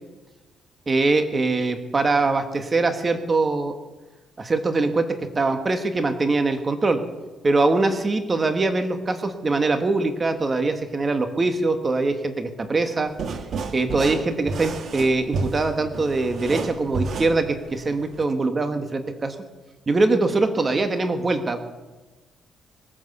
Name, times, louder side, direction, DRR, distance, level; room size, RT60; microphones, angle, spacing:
voice 1, 0.9-3.7 4.4-7.0 7.4-13.1 13.7-19.4 19.9-21.7, right 3 dB, 30° right, 7 dB, 1.7 m, -22 dB
sound 1, 13.1-18.2, right 4 dB, 60° right, 1.6 m, -31 dB
21.0 x 9.6 x 6.9 m, 1.2 s
cardioid pair, 90°, 0 cm